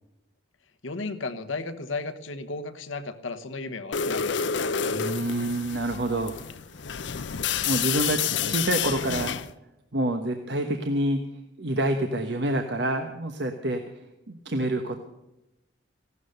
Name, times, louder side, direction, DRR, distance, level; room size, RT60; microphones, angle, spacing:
voice 1, 0.8-4.7, left 3 dB, 90° left, 10 dB, 1.2 m, -34 dB
sound 1, 3.9-9.5, left 7 dB, 70° left, 0.6 m, -29 dB
voice 2, 4.9-6.3 7.6-8.2 8.5-9.4 9.9-11.2 11.6-13.8 14.3-15.0, right 1 dB, 60° right, 5 dB, 1.1 m, -27 dB
16.5 x 12.5 x 6.7 m, 0.92 s
head